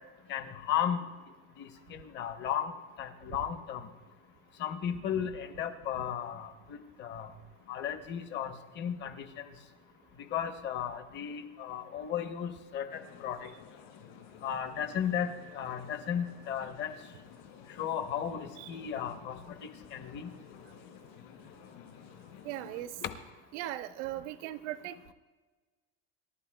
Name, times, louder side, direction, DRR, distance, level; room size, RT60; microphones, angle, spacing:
voice 1, 0.3-1.0 1.6-2.7 3.0-3.8 4.6-7.3 7.7-9.3 10.3-13.5 14.4-16.9 17.8-19.6 19.9-20.3 23.0-23.1, left 9 dB, 30° left, 8 dB, 0.9 m, -35 dB
sound 1, 12.9-22.9, left 8 dB, 65° left, 4.7 m, -53 dB
voice 2, 22.4-22.9 23.5-25.1, right 14 dB, 70° right, 11 dB, 0.8 m, -39 dB
27.5 x 11.5 x 2.2 m, 1.3 s
cardioid pair, 165°, 35 cm